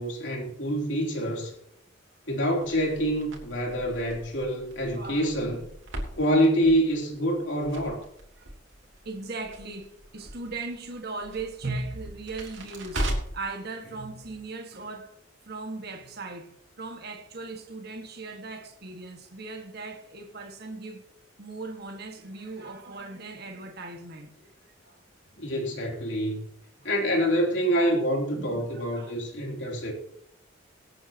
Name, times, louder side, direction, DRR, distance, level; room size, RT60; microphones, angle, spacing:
voice 1, 0.0-1.5 2.3-5.6 6.1-8.0 25.4-26.5 26.8-29.9, equal, 65° left, 3.4 m, -26 dB
Crackle, 2.6-13.5, right 1 dB, 75° right, 3.2 m, -39 dB
voice 2, 4.9-5.3 6.1-6.2 8.4-8.5 9.1-15.2 15.5-21.1 21.4-25.0 26.8-26.9 27.8-27.9 28.3-29.1, right 3 dB, 55° right, 1.8 m, -38 dB
24.0 x 8.9 x 3.0 m
head